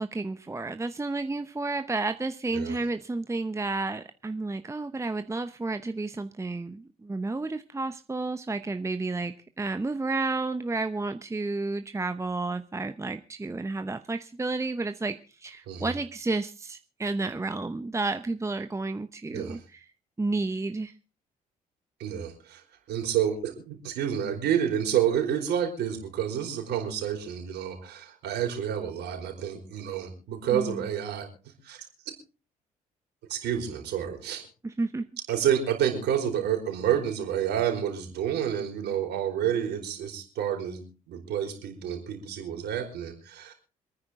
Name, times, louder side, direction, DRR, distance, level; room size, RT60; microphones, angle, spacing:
voice 1, 0.0-19.8 20.2-20.9 30.5-30.8 34.6-35.1, right 3 dB, 15° right, 9 dB, 0.8 m, -31 dB
voice 2, 22.0-22.6 22.9-31.3 31.6-31.8 33.3-34.4 35.3-43.5, right 9 dB, 65° right, 2 dB, 4.8 m, -29 dB
27.0 x 9.8 x 3.7 m, 0.35 s
hypercardioid pair, 45°, 19 cm